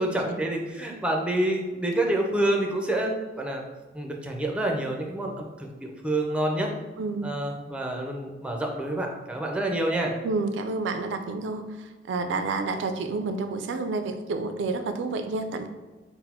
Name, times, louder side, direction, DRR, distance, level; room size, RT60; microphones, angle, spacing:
voice 1, 0.0-3.6 3.9-6.7 7.2-10.1, right 1 dB, 5° right, 1 dB, 0.4 m, -28 dB
voice 2, 7.0-7.3 10.2-15.7, right 3 dB, 90° right, 7 dB, 0.4 m, -29 dB
4.0 x 2.0 x 4.2 m, 1.2 s
head